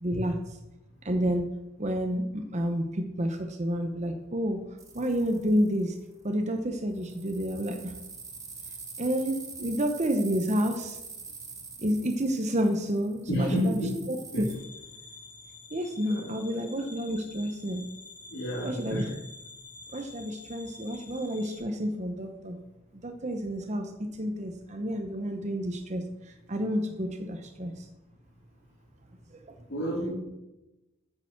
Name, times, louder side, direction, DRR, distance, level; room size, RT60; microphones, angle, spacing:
voice 1, 0.0-0.6 1.0-1.5 1.8-4.6 4.9-6.0 6.2-7.9 9.0-11.0 11.8-13.8 14.1-14.4 15.7-17.9 18.6-19.0 19.9-22.6 22.9-27.9 29.3-29.5, equal, 35° right, 4 dB, 0.9 m, -30 dB
sound 1, 4.8-6.0 7.0-14.6, right 4 dB, 15° right, 1.4 m, -45 dB
voice 2, 13.3-13.9 14.3-14.4 16.1-16.6 18.3-19.1 29.7-30.1, equal, 60° left, -8 dB, 3.3 m, -30 dB
sound 2, 14.4-21.6, left 3 dB, 40° left, 2.6 m, -48 dB
9.1 x 6.8 x 7.4 m, 0.96 s
head